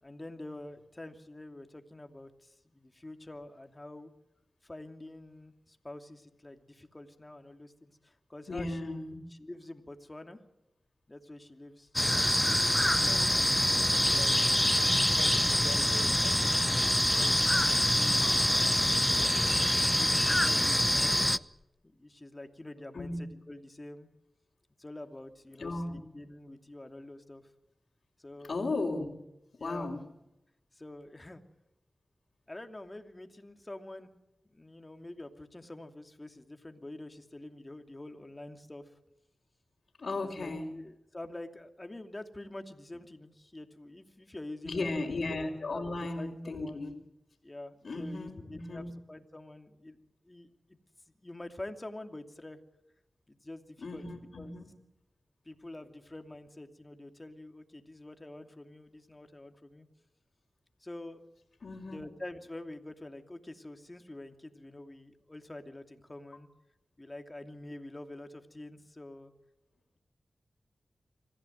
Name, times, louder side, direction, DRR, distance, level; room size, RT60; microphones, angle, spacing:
voice 1, 0.0-4.1 4.6-9.0 9.3-10.4 11.1-11.9 12.3-13.5 13.9-14.4 15.1-18.6 19.2-19.4 19.7-21.5 21.8-24.1 24.8-27.4 28.2-28.6 29.6-29.9 30.7-31.4 32.5-34.1 34.4-38.9 40.2-45.0 45.6-45.8 46.1-46.8 47.4-50.0 50.3-50.5 51.2-52.6 53.3-54.1 54.4-54.5 55.4-59.9 60.8-61.3 61.8-66.5 67.0-69.3, left 1 dB, 30° left, 6 dB, 2.7 m, -46 dB
voice 2, 8.5-9.2 13.1-13.4 22.9-23.2 25.6-26.0 28.5-29.1 29.6-30.0 40.0-40.7 44.6-46.9 47.8-48.9 53.8-54.7 61.6-62.0, left 2 dB, 70° left, -3 dB, 3.8 m, -35 dB
sound 1, 12.0-21.4, equal, 10° left, 0.7 m, -25 dB
Glass, 15.8-21.6, left 4 dB, 50° left, 3.6 m, -58 dB
25.5 x 15.0 x 9.4 m, 0.90 s
cardioid pair, 45°, 0 cm